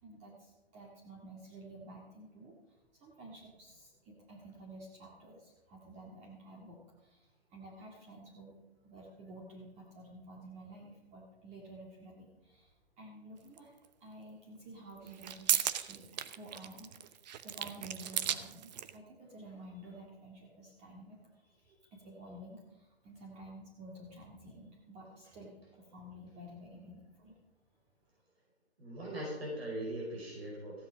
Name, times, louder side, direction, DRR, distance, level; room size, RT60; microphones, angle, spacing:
voice 1, 0.0-13.7 14.0-27.4, right 1 dB, 20° right, -2 dB, 2.0 m, -52 dB
sound 1, 13.6-13.7 15.0-18.9, right 10 dB, 40° right, 0.8 m, -35 dB
voice 2, 28.8-30.8, right 1 dB, 75° right, -3 dB, 5.1 m, -40 dB
15.0 x 10.5 x 5.1 m, 1.1 s
hypercardioid pair, 135°, 32 cm